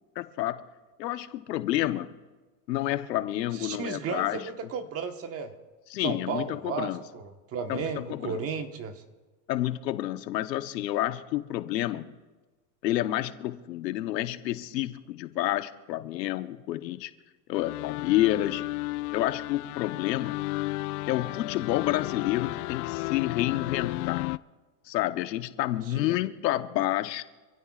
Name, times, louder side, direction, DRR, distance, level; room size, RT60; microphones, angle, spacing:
voice 1, 0.2-0.6 1.0-2.1 2.7-4.5 5.9-7.0 7.7-8.4 9.5-12.1 12.8-17.1 17.5-18.6 19.1-20.4 21.1-24.3 24.9-27.2, left 15 dB, 80° left, 9 dB, 1.1 m, -29 dB
voice 2, 3.5-5.5 6.0-9.0 25.9-26.2, right 5 dB, 30° right, 6 dB, 1.4 m, -34 dB
sound 1, 17.5-24.4, left 20 dB, 65° left, 0.5 m, -33 dB
27.0 x 16.0 x 2.4 m, 1.3 s
supercardioid pair, 135°, 49 cm